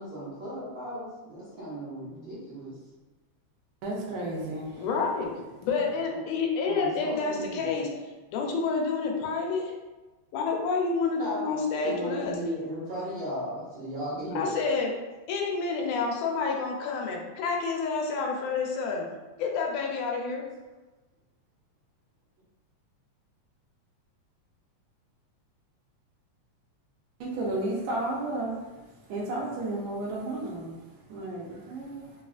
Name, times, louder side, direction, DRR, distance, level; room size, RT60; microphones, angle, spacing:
voice 1, 0.0-2.7 6.6-7.9 11.1-11.5 11.8-14.6, equal, 60° right, -12 dB, 1.3 m, -36 dB
voice 2, 3.8-4.9 27.2-28.6 29.1-30.8 31.1-32.1, right 2 dB, 80° right, -3 dB, 1.8 m, -32 dB
voice 3, 4.8-7.9 8.3-9.7 10.3-12.3 14.3-14.9 15.3-19.1 19.4-20.4, left 4 dB, 85° left, 0 dB, 2.0 m, -29 dB
4.7 x 2.4 x 2.4 m, 1.2 s
omnidirectional pair, 3.4 m